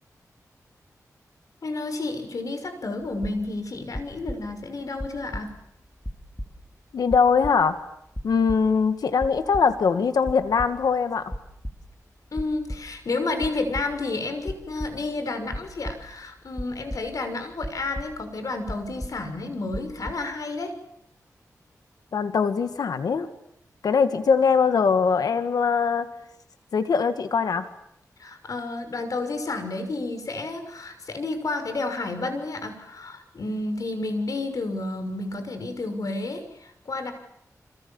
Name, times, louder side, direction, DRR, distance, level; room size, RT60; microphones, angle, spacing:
voice 1, 1.6-5.5 12.3-20.7 28.2-37.1, left 2 dB, 65° left, 8 dB, 6.1 m, -31 dB
sound 1, 3.0-3.6 3.9-4.7 5.0-5.8 6.0-6.8 7.1-7.9 8.2-8.9 9.2-10.0 10.3-10.9 11.2-12.1 12.4-13.1 13.4-14.2 14.5-15.1 15.5-17.3 17.6-18.4 18.7-19.4 19.7-20.1, equal, 10° left, 3.0 m, -36 dB
voice 2, 6.9-7.8 8.2-11.3 22.1-23.3 23.8-26.1 26.7-27.7, left 5 dB, 90° left, 10 dB, 2.1 m, -22 dB
29.0 x 26.5 x 7.3 m, 0.75 s
wide cardioid pair, 90°, 6 cm